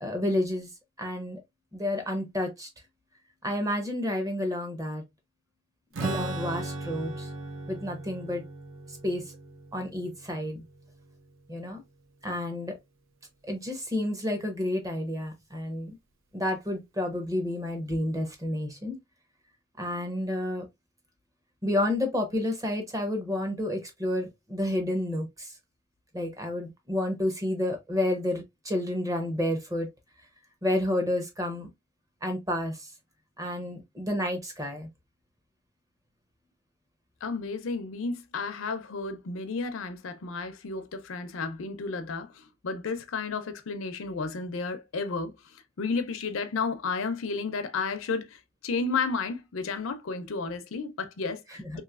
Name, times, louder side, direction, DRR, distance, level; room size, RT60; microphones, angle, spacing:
voice 1, 0.0-0.7 1.0-1.4 1.7-2.7 3.4-5.0 6.0-7.3 7.7-8.4 9.0-9.2 9.7-10.6 11.5-11.8 12.2-12.7 13.5-16.0 16.3-19.0 19.8-20.6 21.6-25.5 26.1-29.9 30.6-31.7 32.2-32.8 33.4-34.9 51.7-51.8, left 1 dB, 15° right, 0.7 m, -30 dB
Strum, 5.9-11.6, right 2 dB, 65° right, 0.6 m, -37 dB
voice 2, 37.2-51.8, left 4 dB, 70° left, 0.5 m, -32 dB
3.0 x 2.9 x 2.3 m
head